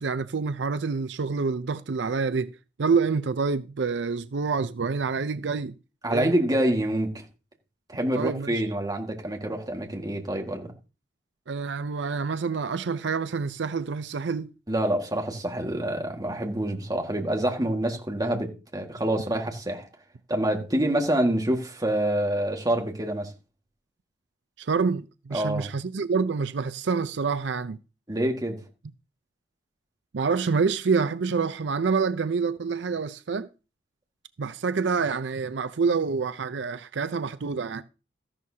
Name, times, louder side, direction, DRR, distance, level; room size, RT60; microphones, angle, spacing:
voice 1, 0.0-5.7 6.1-6.3 8.1-8.6 11.5-14.5 24.6-27.8 30.1-33.5 34.4-37.8, right 5 dB, 75° right, 0.5 m, -27 dB
voice 2, 6.0-7.2 7.9-10.7 14.7-19.9 20.3-23.3 25.3-25.7 28.1-28.6, right 1 dB, 20° right, 1.8 m, -26 dB
14.0 x 11.0 x 2.8 m
head